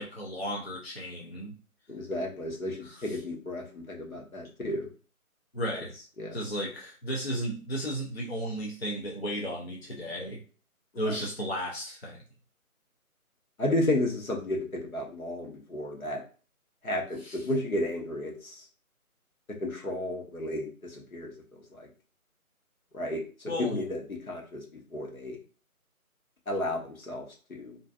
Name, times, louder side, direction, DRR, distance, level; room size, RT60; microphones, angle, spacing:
voice 1, 0.0-1.5 2.8-3.2 5.5-5.9 6.3-10.4 11.0-12.2 17.2-17.5 23.5-23.8, equal, 45° left, -2 dB, 0.5 m, -34 dB
voice 2, 1.9-4.9 6.2-6.4 13.6-16.2 16.8-18.6 19.6-21.9 22.9-23.2 23.6-24.6 24.9-25.4 26.5-27.2 27.5-27.8, left 1 dB, 70° left, 1 dB, 0.9 m, -32 dB
2.5 x 2.3 x 2.3 m, 0.39 s
figure-of-eight pair, 160°, 44 cm